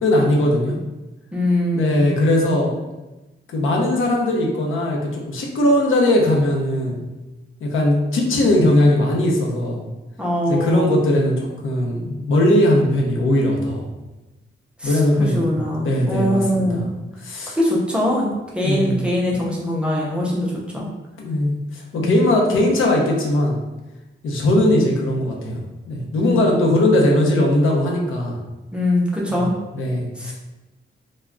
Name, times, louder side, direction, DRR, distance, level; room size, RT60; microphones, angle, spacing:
voice 1, 0.0-0.7 1.7-2.7 3.5-7.1 7.6-9.8 10.5-13.8 14.8-16.9 17.2-17.6 18.6-19.0 21.2-23.6 24.2-28.4 29.3-29.5 29.7-30.3, left 1 dB, 80° left, -1 dB, 0.6 m, -19 dB
voice 2, 1.3-2.1 10.2-10.9 14.8-16.8 17.6-18.3 18.5-20.9 22.0-22.3 26.2-26.5 28.7-29.5 30.2-30.3, left 1 dB, 5° right, -4 dB, 0.4 m, -22 dB
2.2 x 2.1 x 3.6 m, 1.1 s
wide cardioid pair, 175°, 20 cm